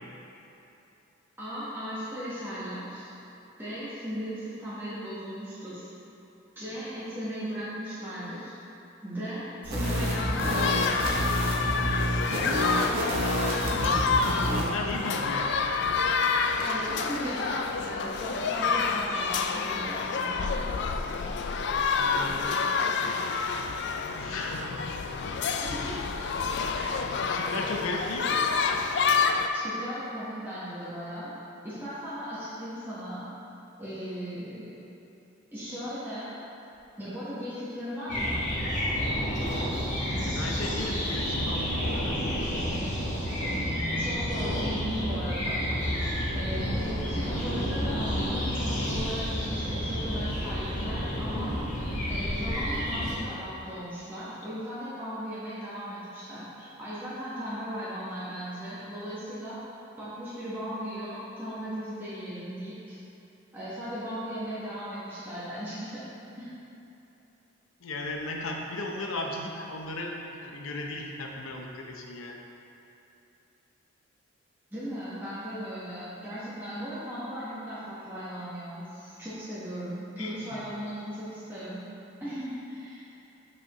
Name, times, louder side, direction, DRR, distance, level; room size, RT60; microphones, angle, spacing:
voice 1, 1.4-3.1 3.6-5.9 6.5-8.5 9.0-11.2 16.6-20.5 25.6-26.3 26.7-27.0 29.5-31.3 31.6-33.3 33.8-34.8 35.5-36.4 37.0-38.4 43.9-45.7 46.3-51.6 52.1-59.6 60.0-63.0 63.5-66.1 66.4-66.5 74.7-81.8 82.2-83.1, equal, 10° right, -12 dB, 1.3 m, -37 dB
sound 1, 9.6-14.7, equal, 70° right, 1.3 m, -28 dB
sound 2, 9.8-29.5, left 5 dB, 55° left, 0.3 m, -28 dB
voice 2, 13.6-15.8 22.0-22.7 24.1-24.9 25.1-25.3 27.2-28.5 40.2-42.6 67.8-72.4 80.2-80.6, left 2 dB, 75° left, 1 dB, 0.7 m, -36 dB
sound 3, 38.1-53.1, equal, 35° left, 1.3 m, -30 dB
8.4 x 4.9 x 3.1 m, 2.9 s
head